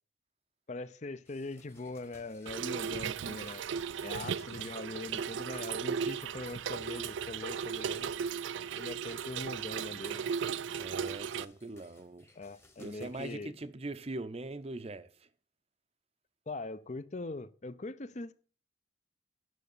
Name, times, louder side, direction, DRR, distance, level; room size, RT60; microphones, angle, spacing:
voice 1, 0.7-3.7 4.0-8.1 8.8-10.2 12.4-13.5 16.5-18.3, left 2 dB, 35° left, 0.6 m, -42 dB
sound 1, 1.2-13.4, left 2 dB, 15° left, 1.1 m, -63 dB
Trickle dribble / Fill (with liquid), 2.5-11.5, right 7 dB, 70° right, 0.4 m, -36 dB
voice 2, 10.7-12.3 12.8-15.3, right 2 dB, 30° right, 0.6 m, -42 dB
9.3 x 6.3 x 6.7 m
head